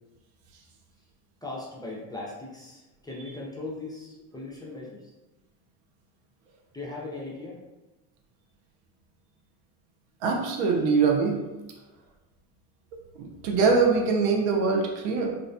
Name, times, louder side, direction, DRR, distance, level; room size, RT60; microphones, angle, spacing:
voice 1, 1.4-5.1 6.7-7.6, left 2 dB, 10° left, -6 dB, 0.4 m, -38 dB
voice 2, 10.2-11.4 13.2-15.3, right 4 dB, 75° right, 1 dB, 0.7 m, -23 dB
2.4 x 2.0 x 2.5 m, 1.1 s
supercardioid pair, 85°, 45 cm